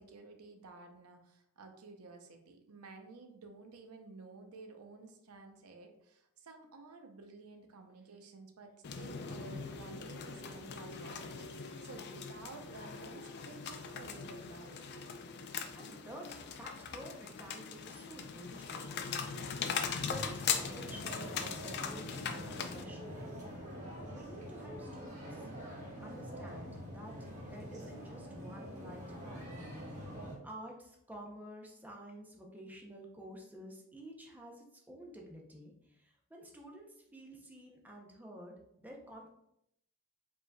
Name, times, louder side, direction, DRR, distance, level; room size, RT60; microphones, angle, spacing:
voice 1, 0.0-14.8, right 3 dB, 90° right, 5 dB, 0.7 m, -53 dB
sound 1, 8.8-22.8, left 6 dB, 50° left, 0.4 m, -40 dB
voice 2, 15.7-23.1 24.1-25.5 26.0-29.4 30.4-39.3, right 1 dB, 10° right, -1 dB, 0.6 m, -51 dB
sound 2, 20.5-30.4, equal, 35° right, 1.5 m, -45 dB
5.0 x 3.7 x 2.2 m, 0.77 s
head